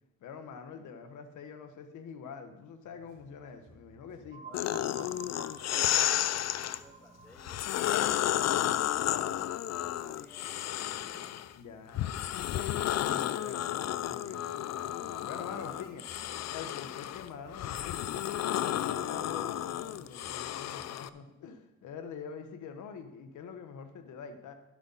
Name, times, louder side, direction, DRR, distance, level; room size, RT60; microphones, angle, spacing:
voice 1, 0.2-4.4 11.6-14.4 14.9-16.0 16.5-24.5, left 6 dB, 80° left, 7 dB, 1.3 m, -45 dB
sound 1, 2.8-20.9, right 1 dB, 70° right, 3.2 m, -60 dB
sound 2, 4.3-10.0, right 4 dB, 30° right, 2.3 m, -52 dB
voice 2, 4.4-8.7 9.0-11.3 15.6-16.6, equal, 5° left, -1 dB, 2.7 m, -55 dB
sound 3, 4.5-6.8 7.4-11.5 11.9-21.1, left 12 dB, 60° left, 0.5 m, -32 dB
12.5 x 7.9 x 4.1 m, 0.93 s
cardioid pair, 90°, 30 cm